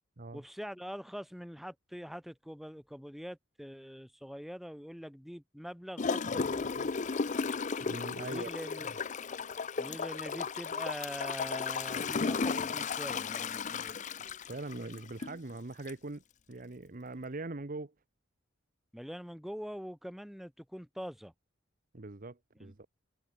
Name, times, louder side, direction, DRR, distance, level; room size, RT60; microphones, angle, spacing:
voice 1, 0.3-6.9 8.2-8.9 9.8-14.0 18.9-21.3 22.6-22.7, equal, ahead, 3.9 m, -44 dB
Gurgling / Toilet flush, 6.0-15.4 15.9-16.0, left 5 dB, 40° left, 0.6 m, -34 dB
voice 2, 7.8-8.5 8.8-9.0 14.5-16.2 16.5-17.9 21.9-22.9, right 2 dB, 45° right, 1.0 m, -41 dB
head